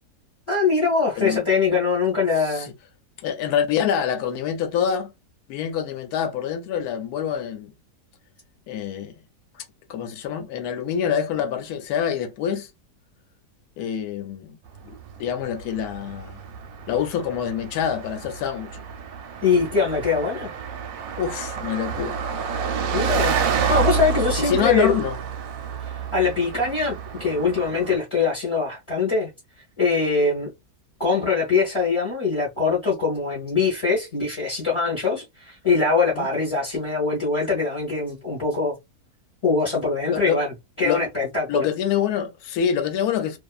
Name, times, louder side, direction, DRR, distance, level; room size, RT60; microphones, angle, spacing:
voice 1, 0.5-2.7 19.4-20.5 22.9-24.9 25.8-29.3 29.8-30.5 31.0-38.7 39.4-41.6, left 4 dB, 25° left, 0.7 m, -23 dB
voice 2, 3.2-5.1 5.5-7.7 8.7-9.1 9.9-12.7 13.8-14.6 14.8-16.4 16.9-18.8 21.2-22.2 24.4-25.1 36.1-36.3 40.1-40.4 40.8-41.0 41.5-43.4, left 8 dB, 75° left, 1.1 m, -26 dB
Car passing by, 14.8-28.0, right 6 dB, 70° right, 0.9 m, -29 dB
2.6 x 2.3 x 2.3 m
omnidirectional pair, 1.7 m